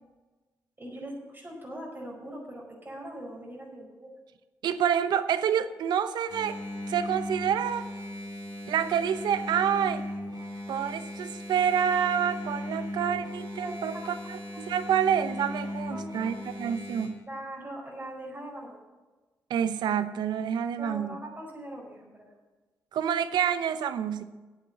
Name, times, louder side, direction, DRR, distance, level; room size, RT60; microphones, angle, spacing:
voice 1, 0.8-4.2 13.0-13.1 13.6-14.1 14.5-14.6 15.6-16.4 17.3-18.8 20.8-22.3, right 1 dB, 30° right, -3 dB, 5.0 m, -41 dB
voice 2, 4.6-6.6 6.9-7.9 8.7-10.0 10.7-17.2 19.5-21.2 22.9-24.2, right 8 dB, 80° right, 13 dB, 0.8 m, -28 dB
Engine, 6.3-17.1, left 1 dB, 65° right, 4.5 m, -37 dB
9.0 x 8.7 x 8.8 m, 1.2 s
supercardioid pair, 45°, 7 cm